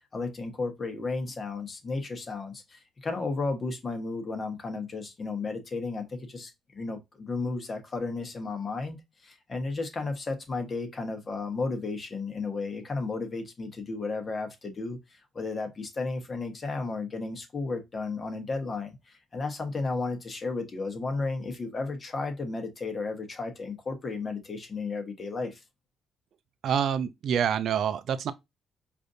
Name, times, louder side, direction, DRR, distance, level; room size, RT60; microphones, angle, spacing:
voice 1, 0.1-9.0 9.2-25.6, left 3 dB, 40° left, 1.1 m, -33 dB
voice 2, 26.6-28.3, right 8 dB, 70° right, 0.4 m, -27 dB
4.9 x 2.6 x 2.6 m
cardioid pair, 90°, 0 cm